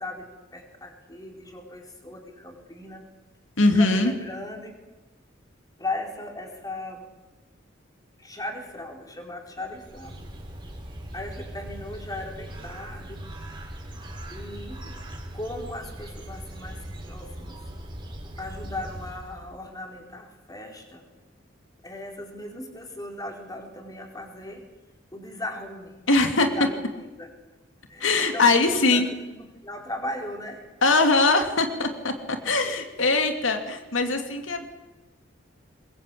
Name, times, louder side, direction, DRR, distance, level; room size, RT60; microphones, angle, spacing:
voice 1, 0.0-3.1 3.7-4.7 5.8-7.1 8.2-10.3 11.1-13.3 14.3-15.0 15.3-17.6 18.4-21.0 21.8-24.7 25.1-26.0 26.4-27.3 27.9-30.7, left 1 dB, 20° left, 2 dB, 4.5 m, -37 dB
voice 2, 3.6-4.1 26.1-26.5 28.0-29.1 30.8-32.1 32.4-34.7, left 3 dB, 85° left, 5 dB, 2.5 m, -21 dB
Bird, 9.5-19.6, right 1 dB, 25° right, 4.5 m, -40 dB
23.5 x 21.5 x 8.5 m, 1.1 s
head